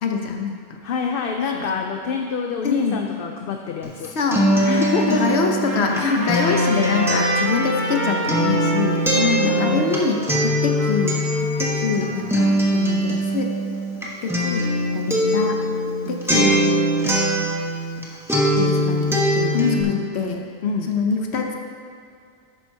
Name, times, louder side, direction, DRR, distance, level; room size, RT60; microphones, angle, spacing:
voice 1, 0.0-0.8 1.5-1.8 2.6-3.0 4.2-4.4 5.0-9.0 9.4-11.1 11.4-13.6 14.2-15.6 16.1-17.6 18.6-19.6 20.1-20.4 20.9-21.6, left 5 dB, 85° left, 2 dB, 1.1 m, -25 dB
voice 2, 0.8-4.1 4.6-5.3 9.1-10.0 19.5-20.1 20.6-20.9, left 6 dB, 65° left, 3 dB, 0.7 m, -24 dB
Acoustic guitar, 3.8-18.0 18.3-19.8, equal, ahead, 1.2 m, -22 dB
Trumpet, 4.8-12.2, right 1 dB, 15° left, 2.5 m, -31 dB
11.5 x 8.9 x 2.8 m, 2.3 s
omnidirectional pair, 1.1 m